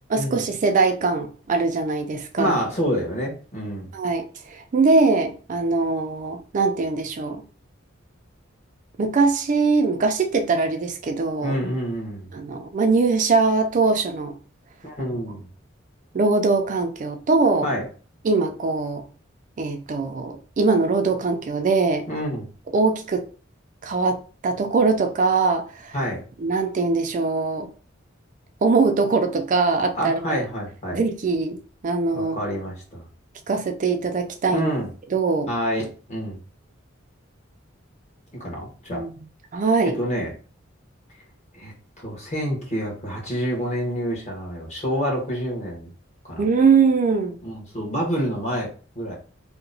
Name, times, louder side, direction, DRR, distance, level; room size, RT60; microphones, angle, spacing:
voice 1, 0.1-2.6 3.9-7.4 9.0-11.6 12.3-14.4 16.1-17.7 18.2-19.1 19.6-22.1 22.7-23.3 23.8-26.0 26.4-27.7 28.6-30.4 30.9-31.6 31.8-32.4 33.5-34.7 35.1-35.5 38.9-39.3 39.5-40.0 46.4-47.4, right 4 dB, 40° right, 0.4 m, -22 dB
voice 2, 2.4-3.9 11.4-12.3 14.8-15.5 17.6-17.8 22.1-22.5 25.9-26.2 30.0-31.0 32.1-33.0 34.5-34.9 35.5-36.4 38.4-39.0 40.0-40.3 41.5-41.7 42.0-45.9 46.3-46.4 47.4-48.7 48.9-49.2, equal, 35° left, 1.2 m, -27 dB
2.8 x 2.1 x 3.8 m
head